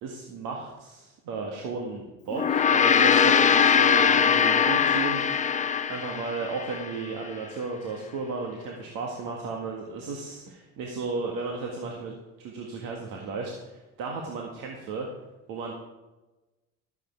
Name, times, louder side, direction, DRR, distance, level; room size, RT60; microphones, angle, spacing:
voice 1, 0.0-5.6 5.9-12.2 12.4-15.1 15.5-15.7, right 4 dB, 65° right, 0 dB, 1.8 m, -34 dB
Gong, 2.3-6.9, left 7 dB, 20° left, 0.5 m, -21 dB
12.5 x 8.1 x 4.6 m, 1.1 s
supercardioid pair, 85°, 35 cm